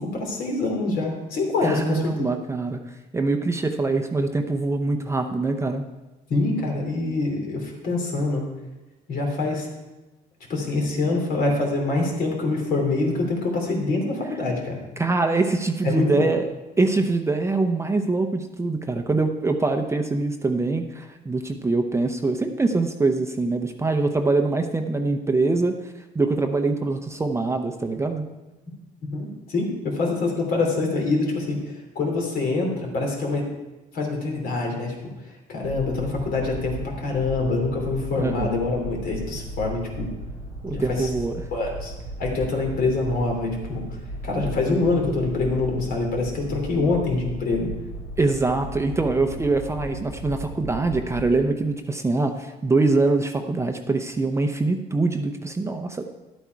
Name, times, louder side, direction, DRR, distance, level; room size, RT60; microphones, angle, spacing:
voice 1, 0.0-2.3 6.3-8.4 9.1-9.7 10.5-14.8 15.8-16.3 29.1-31.6 31.9-33.5 33.9-35.0 35.5-40.1 40.7-41.1 41.5-41.9 42.2-43.8 44.2-47.7, left 3 dB, 60° left, 0 dB, 3.1 m, -25 dB
voice 2, 1.6-2.8 3.1-5.9 15.0-16.4 16.8-28.3 38.2-38.6 40.6-41.5 48.2-56.0, right 3 dB, 15° right, 5 dB, 0.7 m, -24 dB
sound 1, 35.6-51.4, right 1 dB, 80° left, 4.1 m, -36 dB
11.5 x 8.3 x 4.7 m, 1.1 s
cardioid pair, 110°, 17 cm